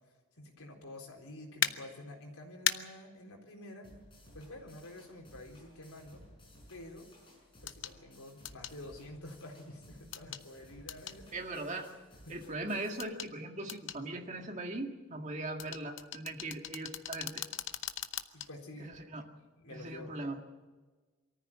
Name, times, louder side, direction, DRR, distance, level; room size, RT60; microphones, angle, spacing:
voice 1, 0.4-3.9 4.3-6.3 6.7-7.1 7.6-11.3 12.3-12.6 18.3-19.0 19.6-20.2, left 1 dB, 85° left, 1 dB, 4.0 m, -49 dB
sound 1, 1.6-1.7 2.7-2.8 4.8-4.9 7.7-7.9 8.5-8.8 10.1-10.4 10.9-11.2 13.0-13.3 13.7-14.0 15.6-18.5 18.9-19.0, left 10 dB, 60° left, 0.8 m, -36 dB
sound 2, 3.8-13.0, equal, 25° left, 5.9 m, -58 dB
voice 2, 11.3-11.9 12.3-17.4 18.8-19.2 19.7-20.4, right 2 dB, 35° right, 3 dB, 2.0 m, -39 dB
23.5 x 14.0 x 8.7 m, 1.3 s
head